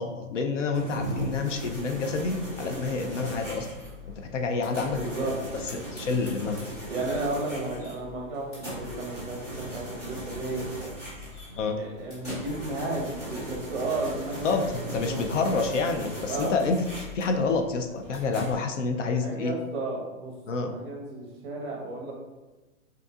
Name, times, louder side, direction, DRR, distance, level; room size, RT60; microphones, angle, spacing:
voice 1, 0.0-3.7 4.2-5.4 5.7-6.6 11.6-11.8 14.4-16.8 17.1-19.5 20.5-20.7, left 4 dB, 60° left, 5 dB, 0.6 m, -28 dB
sound 1, 0.7-18.5, equal, 10° left, 0.6 m, -38 dB
voice 2, 5.0-5.3 6.9-10.6 11.5-15.4 16.3-16.6 19.0-22.1, right 2 dB, 40° right, -1 dB, 1.3 m, -33 dB
5.2 x 3.8 x 2.4 m, 1.1 s
hypercardioid pair, 170°, 43 cm